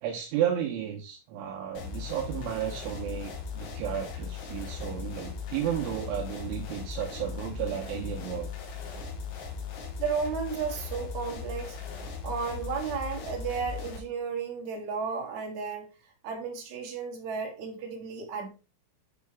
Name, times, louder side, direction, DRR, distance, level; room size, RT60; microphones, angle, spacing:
voice 1, 0.0-8.5, right 10 dB, 75° right, 0 dB, 3.1 m, -33 dB
sound 1, 1.8-14.0, left 6 dB, 65° left, 4.0 m, -38 dB
voice 2, 10.0-11.8 12.2-15.9 16.2-18.5, right 5 dB, 45° right, -1 dB, 2.9 m, -33 dB
9.5 x 5.3 x 3.5 m, 0.32 s
omnidirectional pair, 6.0 m